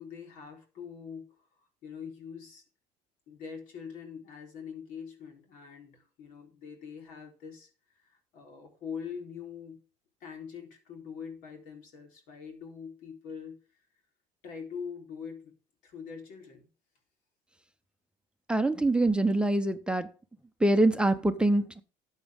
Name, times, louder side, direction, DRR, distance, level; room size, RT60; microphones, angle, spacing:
voice 1, 0.0-1.5 1.8-2.6 3.3-7.7 8.0-9.8 10.2-13.6 14.4-15.5 15.8-16.7, left 6 dB, 75° left, 3.9 m, -43 dB
voice 2, 18.5-20.1 20.6-21.8, right 2 dB, 5° right, 0.7 m, -24 dB
12.5 x 8.1 x 3.7 m
cardioid pair, 125°, 14 cm